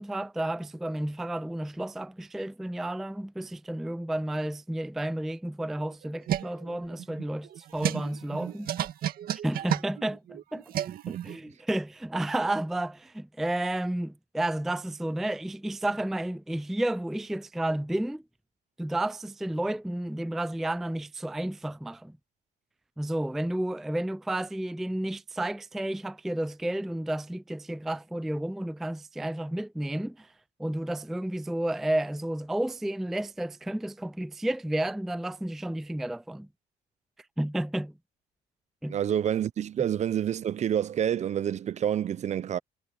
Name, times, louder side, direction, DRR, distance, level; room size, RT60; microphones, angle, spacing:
voice 1, 0.0-8.7 9.3-10.6 11.1-18.2 18.8-22.1 23.0-30.3 30.6-36.5 37.4-37.9 38.8-39.0, right 1 dB, ahead, 0.3 m, -31 dB
sound 1, 5.8-11.4, right 11 dB, 60° right, 1.9 m, -33 dB
voice 2, 38.9-42.6, right 9 dB, 45° right, 0.6 m, -28 dB
cardioid pair, 110°, 17 cm